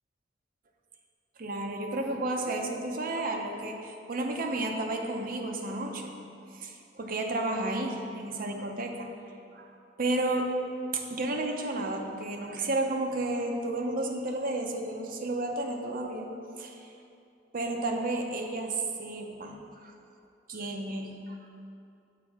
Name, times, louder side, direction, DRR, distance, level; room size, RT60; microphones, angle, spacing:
voice 1, 1.4-6.2 6.5-9.2 9.5-9.7 10.0-10.6 10.9-16.3 16.6-16.9 17.5-19.9 20.5-21.4, right 2 dB, 50° right, 2 dB, 0.7 m, -32 dB
6.9 x 4.3 x 4.7 m, 2.5 s
head